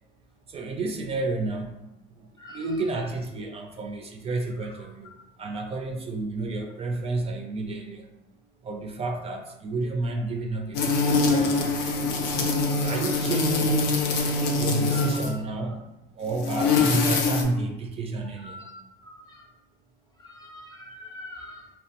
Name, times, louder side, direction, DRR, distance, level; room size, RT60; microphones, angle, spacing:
voice 1, 0.5-1.8 2.2-5.1 5.4-8.1 8.6-12.3 12.8-14.0 14.5-15.8 16.2-18.7, right 3 dB, 35° right, 0.4 m, -31 dB
voice 2, 2.4-2.7 12.6-13.1 14.9-15.4 16.5-17.0 18.4-19.5 20.2-21.7, left 2 dB, 25° left, 0.5 m, -43 dB
sound 1, 10.7-15.4 16.3-17.4, left 3 dB, 85° left, 0.5 m, -24 dB
2.9 x 2.1 x 2.8 m
cardioid pair, 110°, 17 cm